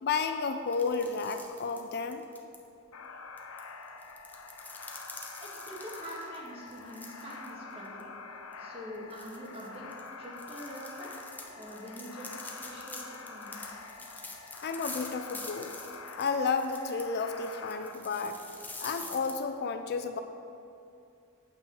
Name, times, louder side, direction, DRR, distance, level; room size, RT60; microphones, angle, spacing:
voice 1, 0.0-2.2 14.6-15.7 16.2-18.4 18.8-20.2, left 5 dB, 50° left, 7 dB, 0.4 m, -32 dB
sound 1, 0.7-2.6 3.4-7.5 7.9-8.0 8.5-8.6 9.1-19.3, left 2 dB, 10° left, 0.7 m, -46 dB
sound 2, 2.9-17.9, left 4 dB, 85° left, 0.8 m, -46 dB
voice 2, 5.4-8.1 8.6-9.9 10.2-11.1 11.5-12.3 12.6-13.8, equal, 25° right, -4 dB, 1.9 m, -44 dB
8.8 x 4.5 x 7.0 m, 2.6 s
head